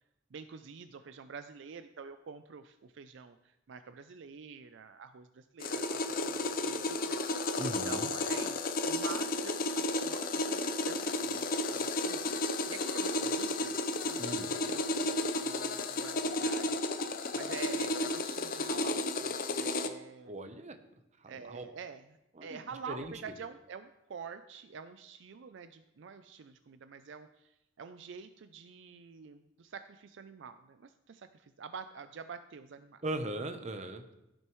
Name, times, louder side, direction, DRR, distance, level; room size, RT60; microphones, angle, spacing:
voice 1, 0.3-7.5 7.9-13.8 14.0-20.3 21.3-27.5 27.8-33.0, right 5 dB, 65° right, 10 dB, 0.4 m, -47 dB
sound 1, 5.6-19.9, left 2 dB, 45° left, 0.6 m, -33 dB
voice 2, 7.6-8.1 14.2-14.5 20.3-20.8 21.2-21.6 22.3-22.6 22.9-23.1 33.0-34.0, right 1 dB, 35° right, 7 dB, 0.8 m, -38 dB
15.5 x 6.3 x 3.1 m, 0.91 s
head